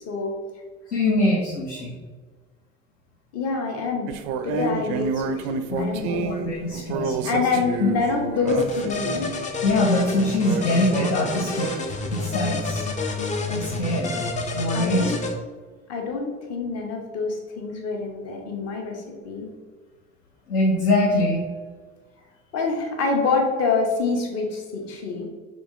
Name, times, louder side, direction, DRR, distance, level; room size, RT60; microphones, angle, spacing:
voice 1, 0.9-1.9 5.7-7.2 7.8-7.9 9.6-11.7 12.1-12.8 13.5-15.1 20.5-21.5, left 1 dB, 70° left, -4 dB, 0.9 m, -23 dB
voice 2, 3.3-4.2 4.4-6.9 7.2-9.4 14.7-15.2 15.9-19.5 22.5-25.3, left 4 dB, 40° left, 1 dB, 1.0 m, -26 dB
sound 1, 4.1-9.4 10.0-12.3, right 5 dB, 50° right, 0.5 m, -30 dB
sound 2, 8.5-15.3, left 3 dB, 20° left, 0.5 m, -29 dB
6.2 x 3.1 x 2.6 m, 1.4 s
figure-of-eight pair, 65°, 39 cm